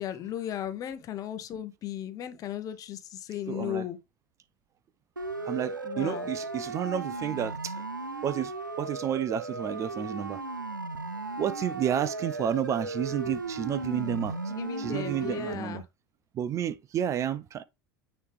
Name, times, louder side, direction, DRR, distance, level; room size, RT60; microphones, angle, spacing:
voice 1, 0.0-4.0 5.8-6.3 14.5-15.8, left 11 dB, 35° left, 0.9 m, -36 dB
voice 2, 3.5-3.9 5.4-7.9 8.2-10.4 11.4-14.3 14.8-15.8 16.3-17.6, right 9 dB, 30° right, 0.4 m, -31 dB
Siren, 5.2-15.5, right 3 dB, 85° right, 0.5 m, -36 dB
9.3 x 3.1 x 3.5 m
figure-of-eight pair, 75°, 10 cm